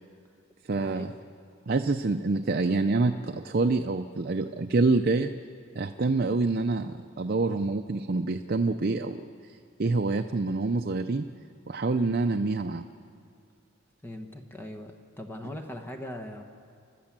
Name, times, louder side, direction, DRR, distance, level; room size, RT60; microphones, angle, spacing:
voice 1, 0.7-1.1 1.7-5.3 5.8-9.3 9.8-11.2 11.7-12.8, right 3 dB, 45° right, 7 dB, 0.5 m, -26 dB
voice 2, 14.0-16.4, left 1 dB, 10° left, 4 dB, 1.1 m, -40 dB
29.5 x 12.0 x 7.4 m, 2.3 s
head